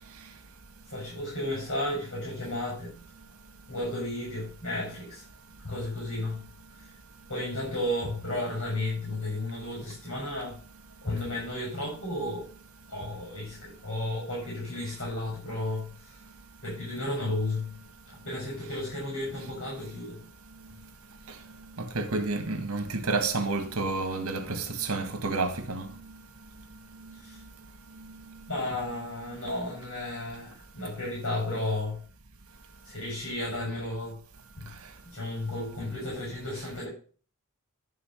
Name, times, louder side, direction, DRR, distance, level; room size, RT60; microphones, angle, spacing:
voice 1, 0.9-3.0 3.7-5.2 5.6-6.5 6.8-6.9 7.3-10.6 11.0-12.5 12.9-16.2 16.6-17.8 18.1-20.2 27.2-27.4 28.5-32.0 32.8-34.2 34.6-34.7 35.0-36.9, left 1 dB, 65° left, 6.6 m, -33 dB
voice 2, 21.8-25.9, right 3 dB, 85° right, 1.7 m, -30 dB
11.5 x 5.7 x 5.8 m
head